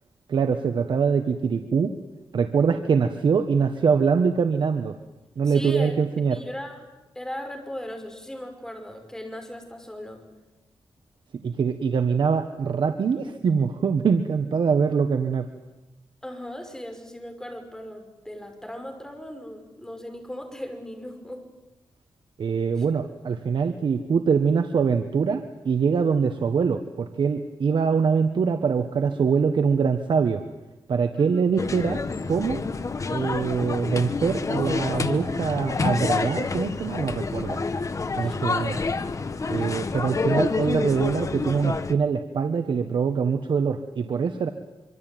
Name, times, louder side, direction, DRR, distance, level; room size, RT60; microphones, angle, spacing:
voice 1, 0.3-1.9 2.3-5.0 5.4-6.4 11.4-15.5 22.4-30.4 30.9-32.0 32.3-32.6 33.1-37.6 38.2-38.8 39.5-44.5, right 6 dB, 65° right, 7 dB, 1.4 m, -23 dB
voice 2, 5.5-6.9 7.2-10.2 16.2-21.4 22.8-22.9 31.2-31.4 38.2-38.4, left 1 dB, 5° left, 5 dB, 5.6 m, -38 dB
sound 1, 31.6-41.9, left 4 dB, 35° left, 1.4 m, -28 dB
25.5 x 25.0 x 9.3 m, 1.0 s
wide cardioid pair, 125°, 9 cm